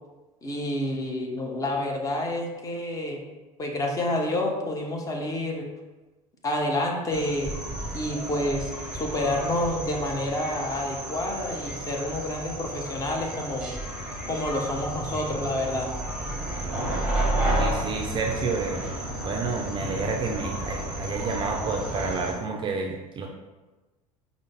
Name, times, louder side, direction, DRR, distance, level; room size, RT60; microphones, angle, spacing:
voice 1, 0.4-3.2 3.6-5.7 6.4-7.5 7.9-13.7 14.3-15.9, left 1 dB, 20° left, 1 dB, 0.6 m, -29 dB
sound 1, 7.1-22.3, right 1 dB, 5° right, 0.9 m, -31 dB
voice 2, 17.6-18.8 19.2-23.3, right 4 dB, 25° right, 1 dB, 0.4 m, -30 dB
5.0 x 2.0 x 3.6 m, 1.2 s
figure-of-eight pair, 70°, 19 cm